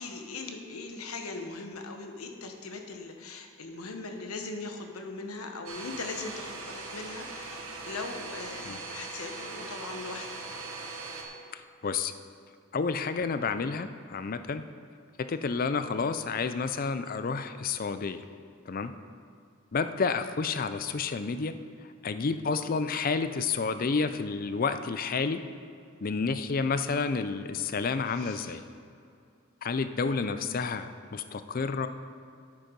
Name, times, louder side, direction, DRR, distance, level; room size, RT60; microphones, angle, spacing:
voice 1, 0.0-10.3 28.2-28.6, left 3 dB, 85° left, 4 dB, 1.1 m, -40 dB
Domestic sounds home sounds, 5.7-11.2, right 3 dB, 80° right, 1.4 m, -40 dB
voice 2, 11.5-12.1 12.7-14.6 15.2-18.2 18.7-18.9 19.7-21.5 22.0-25.4 26.0-28.6 29.6-31.9, left 4 dB, 40° left, 11 dB, 0.4 m, -30 dB
9.3 x 8.4 x 5.2 m, 2.4 s
head